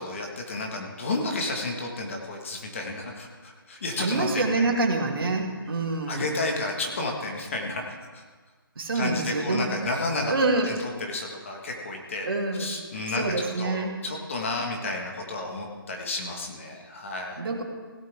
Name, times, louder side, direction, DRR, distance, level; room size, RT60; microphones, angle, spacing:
voice 1, 0.0-4.8 6.1-8.2 8.9-10.3 10.6-12.3 12.6-17.4, left 2 dB, 35° left, 1 dB, 1.7 m, -31 dB
voice 2, 4.0-6.3 8.8-9.7 10.3-10.8 12.2-12.7 13.0-14.0 17.4-17.6, right 3 dB, 70° right, 0 dB, 2.7 m, -26 dB
16.5 x 12.0 x 3.6 m, 1.4 s
hypercardioid pair, 175°, 12 cm